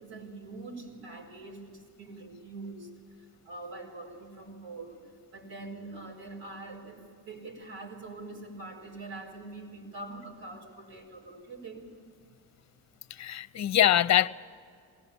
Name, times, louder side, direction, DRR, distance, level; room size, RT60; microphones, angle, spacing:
voice 1, 0.0-2.9 3.4-11.8, right 2 dB, 85° right, -1 dB, 4.8 m, -44 dB
voice 2, 13.1-14.3, left 12 dB, 45° left, 14 dB, 0.7 m, -23 dB
21.0 x 18.0 x 8.7 m, 2.3 s
supercardioid pair, 70°, 38 cm